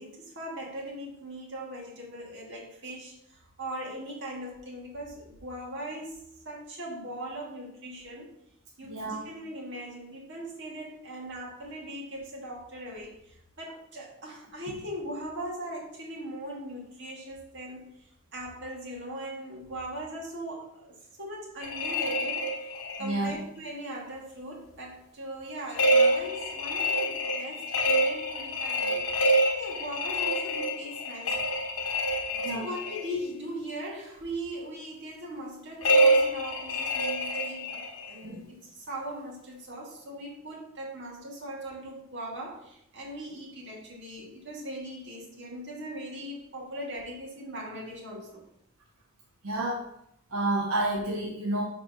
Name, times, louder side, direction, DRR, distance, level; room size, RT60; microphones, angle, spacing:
voice 1, 0.0-8.3 8.8-22.5 23.0-31.4 32.4-48.4, right 1 dB, 55° right, -2 dB, 1.9 m, -40 dB
voice 2, 8.9-9.2 23.0-23.3 32.4-32.6 38.2-38.3 49.4-49.9 50.3-51.6, right 1 dB, 90° right, -2 dB, 1.3 m, -29 dB
sound 1, 21.6-23.2 25.7-33.1 35.8-38.1, right 1 dB, 70° left, 1.2 m, -26 dB
5.0 x 4.4 x 5.5 m, 0.74 s
head